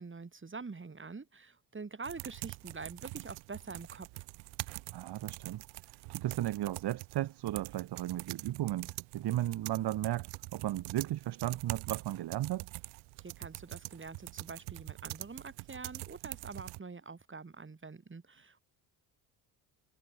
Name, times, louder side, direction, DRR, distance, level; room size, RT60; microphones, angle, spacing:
voice 1, 0.0-4.1 13.2-18.6, right 4 dB, 25° right, 3.8 m, -45 dB
sound 1, 2.0-16.8, right 26 dB, 80° right, 1.5 m, -44 dB
voice 2, 4.9-5.6 6.1-12.7, right 14 dB, 55° right, 1.1 m, -35 dB
supercardioid pair, 60°, 47 cm